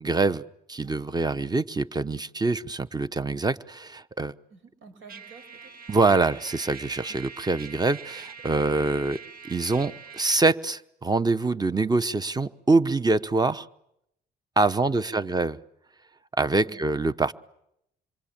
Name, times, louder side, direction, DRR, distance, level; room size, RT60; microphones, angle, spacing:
voice 1, 0.0-4.3 5.9-9.2 9.5-13.7 14.6-15.6 16.3-17.3, right 3 dB, 20° right, 15 dB, 1.0 m, -25 dB
voice 2, 4.5-5.7 7.1-7.2 14.8-15.4 16.6-16.8, right 4 dB, 80° right, 8 dB, 6.4 m, -50 dB
Trumpet, 5.1-10.4, right 7 dB, 50° right, 1.7 m, -43 dB
27.0 x 23.5 x 8.8 m, 0.80 s
cardioid pair, 90°, 20 cm